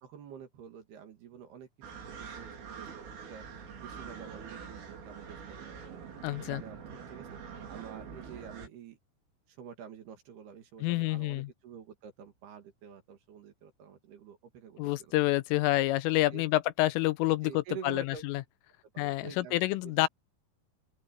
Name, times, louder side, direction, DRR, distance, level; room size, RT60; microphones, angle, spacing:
voice 1, 0.0-1.7 2.1-3.5 3.8-5.8 6.4-7.4 7.7-9.0 9.5-15.1 16.3-16.4 17.4-18.2 18.9-20.1, right 8 dB, 60° right, 3.7 m, -48 dB
sound 1, 1.8-8.7, right 6 dB, 75° right, 7.5 m, -45 dB
voice 2, 6.2-6.6 10.8-11.5 14.8-18.4 19.0-20.1, left 18 dB, 90° left, 3.3 m, -28 dB
open air
omnidirectional pair, 5.9 m